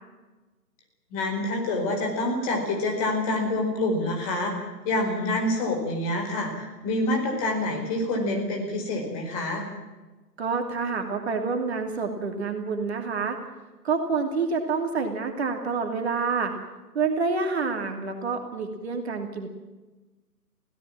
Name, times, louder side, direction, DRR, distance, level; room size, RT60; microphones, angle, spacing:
voice 1, 1.1-4.5 4.8-9.7, left 2 dB, 20° left, 1 dB, 4.8 m, -27 dB
voice 2, 10.4-13.4 13.8-16.5 16.9-19.5, right 4 dB, 40° right, 4 dB, 2.8 m, -27 dB
24.5 x 17.0 x 7.5 m, 1.2 s
figure-of-eight pair, 140°, 50 cm